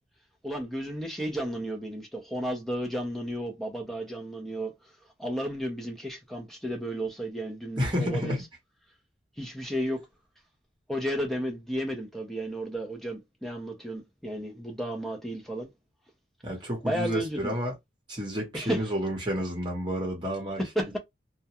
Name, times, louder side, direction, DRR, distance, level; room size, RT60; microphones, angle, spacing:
voice 1, 0.4-4.7 5.2-8.4 9.4-10.1 10.9-15.7 16.8-17.5 18.5-18.8 20.6-21.0, equal, ahead, 0.6 m, -33 dB
voice 2, 7.8-8.4 16.4-17.7 18.1-20.6, equal, 25° right, 0.9 m, -30 dB
2.3 x 2.1 x 2.8 m
head